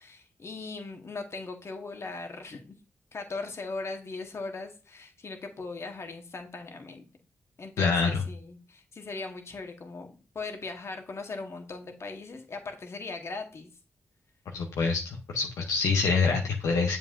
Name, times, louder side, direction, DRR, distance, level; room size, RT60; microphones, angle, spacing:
voice 1, 0.0-2.7 3.1-7.1 7.6-13.7, left 3 dB, 55° left, 4 dB, 1.2 m, -39 dB
voice 2, 7.8-8.3 14.5-17.0, left 4 dB, 85° left, 1 dB, 0.7 m, -26 dB
7.1 x 5.3 x 2.5 m, 0.34 s
supercardioid pair, 40°, 5 cm